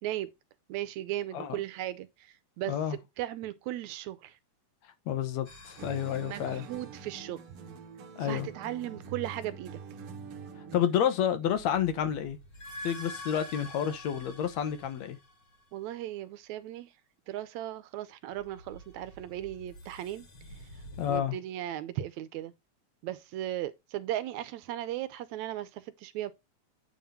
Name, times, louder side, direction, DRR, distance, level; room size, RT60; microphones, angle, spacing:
voice 1, 0.0-0.3 0.7-4.4 6.2-7.4 8.2-9.8 15.7-16.9 17.3-20.3 21.1-22.5 23.0-26.3, right 13 dB, 80° right, 1.9 m, -37 dB
voice 2, 2.7-3.0 5.1-6.6 8.2-8.5 10.7-12.4 12.8-15.2 21.0-21.4, left 9 dB, 75° left, 2.1 m, -29 dB
sound 1, 5.5-7.4 11.3-15.8 18.3-21.2, left 1 dB, 35° left, 1.8 m, -47 dB
sound 2, 5.8-11.1, right 5 dB, 60° right, 1.6 m, -45 dB
9.2 x 3.6 x 5.5 m
omnidirectional pair, 3.4 m